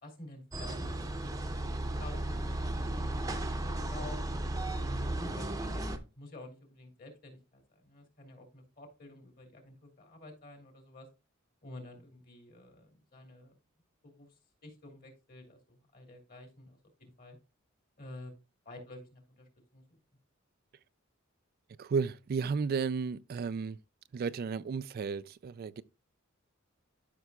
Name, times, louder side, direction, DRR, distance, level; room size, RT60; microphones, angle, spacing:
voice 1, 0.0-4.2 4.8-5.9 6.2-11.1 11.6-13.6 14.0-14.3 14.6-17.4 18.0-18.3 18.6-20.0, left 1 dB, 45° left, 2.9 m, -50 dB
sound 1, 0.5-6.0, right 1 dB, 15° right, 0.8 m, -35 dB
voice 2, 21.8-23.8 24.1-25.8, right 5 dB, 45° right, 0.3 m, -33 dB
12.5 x 5.8 x 2.3 m
head